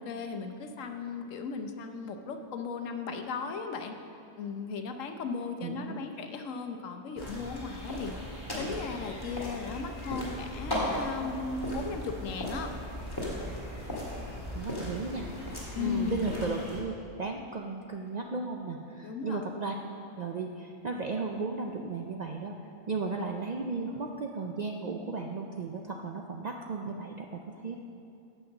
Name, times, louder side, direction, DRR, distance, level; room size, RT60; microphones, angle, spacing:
voice 1, 0.0-4.0 4.4-8.2 8.6-12.7 15.7-16.2 19.0-19.4, left 5 dB, 85° left, 6 dB, 1.1 m, -36 dB
voice 2, 5.6-6.0 14.5-15.3 15.8-16.9 17.2-19.7 20.2-22.5 22.9-27.7, right 4 dB, 60° right, 2 dB, 0.4 m, -35 dB
sound 1, 7.2-16.8, left 1 dB, 20° left, 1.9 m, -37 dB
8.7 x 5.6 x 7.4 m, 2.6 s
omnidirectional pair, 1.3 m